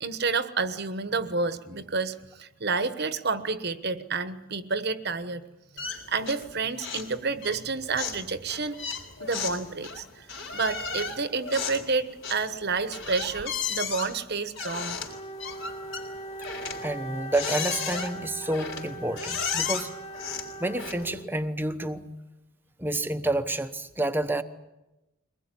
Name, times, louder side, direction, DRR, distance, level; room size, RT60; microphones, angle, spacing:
voice 1, 0.0-5.4 5.8-8.8 9.2-10.3 10.5-15.0, right 4 dB, 50° right, 12 dB, 1.2 m, -29 dB
sound 1, 5.8-6.5 6.8-7.1 7.4-21.2, left 6 dB, 60° left, 4.2 m, -35 dB
Wind instrument woodwind instrument, 15.0-21.4, right 2 dB, 25° left, 1.6 m, -41 dB
voice 2, 16.8-19.9 20.6-22.1 22.8-24.4, right 1 dB, 10° right, 10 dB, 1.0 m, -29 dB
23.5 x 20.0 x 9.9 m, 0.98 s
head